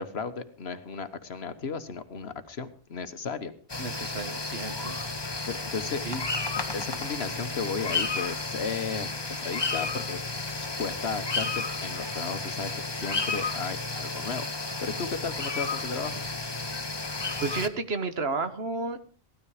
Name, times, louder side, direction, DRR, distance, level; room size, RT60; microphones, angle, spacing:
voice 1, 0.0-3.5 5.5-6.0 6.7-10.2 10.5-14.4 14.8-16.2, left 5 dB, 90° left, 11 dB, 1.5 m, -34 dB
sound 1, 3.7-17.7, left 3 dB, 25° left, 1.2 m, -32 dB
voice 2, 3.8-5.0 6.0-6.2 17.4-19.0, right 3 dB, 75° right, 10 dB, 1.6 m, -32 dB
17.0 x 13.0 x 4.9 m, 0.40 s
omnidirectional pair, 1.0 m